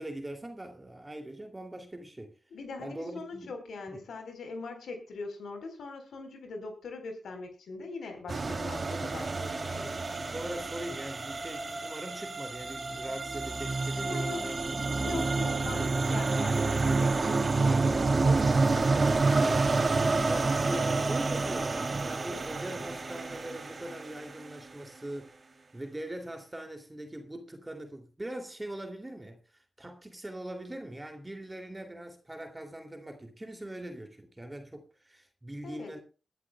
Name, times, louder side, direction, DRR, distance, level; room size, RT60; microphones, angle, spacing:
voice 1, 0.0-2.4 2.8-3.5 3.9-4.0 9.0-9.3 9.6-9.8 10.2-15.1 15.8-16.9 18.9-25.4 25.7-36.0, right 1 dB, 20° right, 2.6 m, -42 dB
voice 2, 2.5-9.9 14.0-14.4 15.0-19.4 35.6-36.0, left 3 dB, 85° left, 4.0 m, -41 dB
sound 1, 8.3-24.4, right 3 dB, 45° right, 2.8 m, -28 dB
21.5 x 11.5 x 2.3 m
cardioid pair, 60°, 0 cm